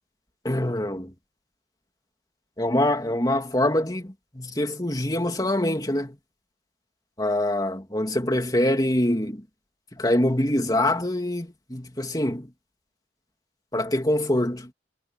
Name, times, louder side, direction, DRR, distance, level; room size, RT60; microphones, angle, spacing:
voice 1, 0.4-1.1 2.6-6.2 7.2-9.5 9.9-12.5 13.7-14.7, left 1 dB, 20° left, 2.9 m, -24 dB
head